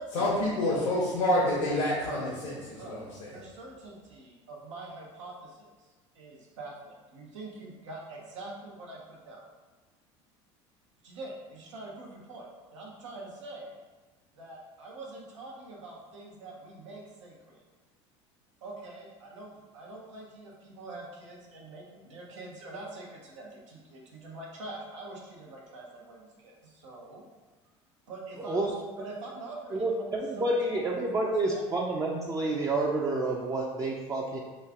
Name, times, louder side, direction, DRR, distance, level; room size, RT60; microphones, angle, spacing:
voice 1, 0.1-3.3, left 1 dB, 80° left, -6 dB, 0.9 m, -28 dB
voice 2, 3.3-5.7 6.1-9.5 11.0-13.8 14.3-17.6 18.6-19.5 19.7-27.2 28.1-30.1 30.4-31.6, right 2 dB, 90° right, -2 dB, 0.8 m, -44 dB
voice 3, 28.4-28.7 29.7-34.4, right 2 dB, 20° right, -2 dB, 0.4 m, -29 dB
3.1 x 2.4 x 3.5 m, 1.3 s
hypercardioid pair, 80°, 15 cm